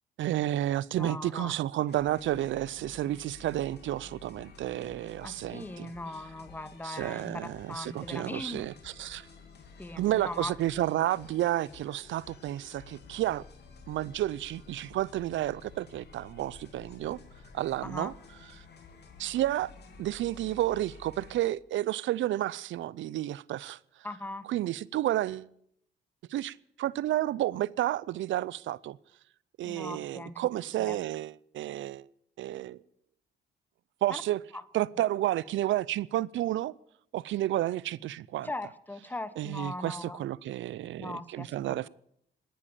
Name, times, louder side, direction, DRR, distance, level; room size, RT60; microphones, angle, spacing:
voice 1, 0.2-5.9 6.8-9.3 10.0-13.4 13.9-17.2 17.5-18.1 19.2-19.7 20.0-23.8 24.5-25.5 26.3-29.0 29.6-32.1 32.4-32.8 34.0-34.4 34.7-36.7 37.1-38.5 39.4-41.9, right 14 dB, 75° right, 0.6 m, -31 dB
voice 2, 0.9-1.5 5.2-8.7 9.8-10.5 17.8-18.2 24.0-24.5 29.6-30.5 30.8-31.0 34.1-34.2 34.5-34.6 38.4-40.2 41.0-41.9, left 2 dB, 10° left, 1.0 m, -39 dB
sound 1, 1.9-21.4, left 4 dB, 55° left, 3.0 m, -52 dB
18.5 x 10.5 x 7.2 m
cardioid pair, 90°, 20 cm